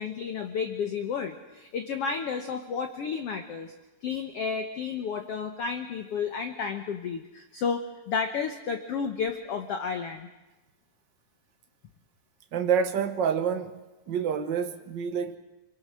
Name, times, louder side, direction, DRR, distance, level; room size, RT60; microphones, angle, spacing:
voice 1, 0.0-3.7 4.0-10.3, left 6 dB, 65° left, 1.6 m, -32 dB
voice 2, 12.5-13.7 14.1-15.4, right 7 dB, 70° right, 1.0 m, -27 dB
29.0 x 23.0 x 6.3 m
omnidirectional pair, 4.1 m